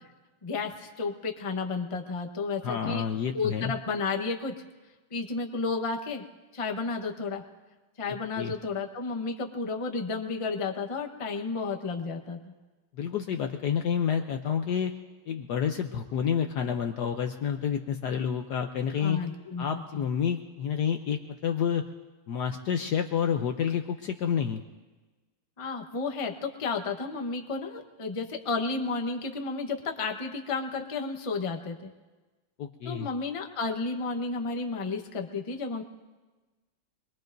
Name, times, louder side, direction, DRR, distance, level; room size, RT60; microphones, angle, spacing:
voice 1, 0.4-3.0 3.3-4.6 5.1-6.2 6.5-7.4 8.0-12.4 19.0-20.0 25.6-31.9 32.8-35.8, left 4 dB, 25° left, 3 dB, 0.8 m, -32 dB
voice 2, 2.6-3.7 8.4-8.5 12.9-14.9 15.3-19.2 19.6-21.8 22.3-24.6 32.6-33.1, left 8 dB, 65° left, 5 dB, 1.1 m, -29 dB
25.5 x 21.5 x 2.6 m, 1.3 s
omnidirectional pair, 2.2 m